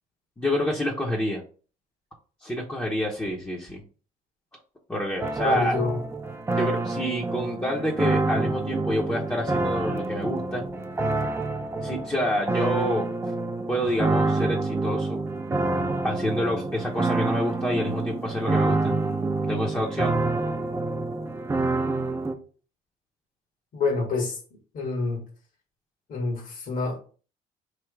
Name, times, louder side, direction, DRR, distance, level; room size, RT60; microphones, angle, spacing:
voice 1, 0.4-1.4 2.4-3.8 4.9-5.8 6.5-10.6 11.8-13.1 13.7-15.2 16.0-18.9 19.5-20.2, equal, 10° left, -2 dB, 0.9 m, -28 dB
sound 1, 5.2-22.3, right 3 dB, 15° right, 0.6 m, -27 dB
voice 2, 5.4-6.0 23.7-24.4 24.7-25.2 26.1-27.0, left 3 dB, 55° left, -2 dB, 1.5 m, -27 dB
3.3 x 2.9 x 4.6 m, 0.39 s
cardioid pair, 110°, 17 cm